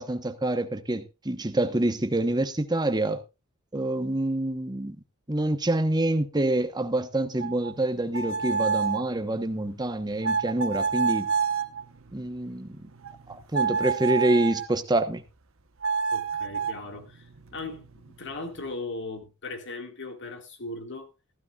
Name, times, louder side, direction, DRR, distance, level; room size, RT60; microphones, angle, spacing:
voice 1, 0.0-3.2 3.7-5.0 5.3-11.3 12.1-12.8 13.3-15.2, right 1 dB, 20° right, 1.1 m, -26 dB
sound 1, 7.4-14.8 15.8-18.7, right 5 dB, 65° right, 1.1 m, -30 dB
voice 2, 16.1-21.1, left 3 dB, 55° left, 2.1 m, -38 dB
15.0 x 13.0 x 2.4 m
head